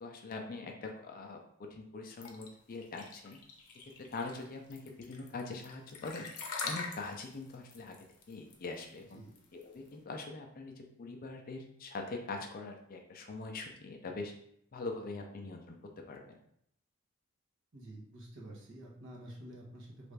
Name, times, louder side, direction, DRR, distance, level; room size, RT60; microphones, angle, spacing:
voice 1, 0.0-3.4 4.1-6.3 6.6-8.0 8.3-9.2 9.5-14.3 14.7-15.8 16.1-16.3, left 3 dB, 40° left, 3 dB, 0.4 m, -43 dB
sound 1, 2.2-9.9, left 4 dB, 90° left, 0.6 m, -44 dB
voice 2, 17.7-20.1, right 1 dB, 60° right, -3 dB, 0.9 m, -49 dB
3.2 x 2.5 x 3.2 m, 0.71 s
head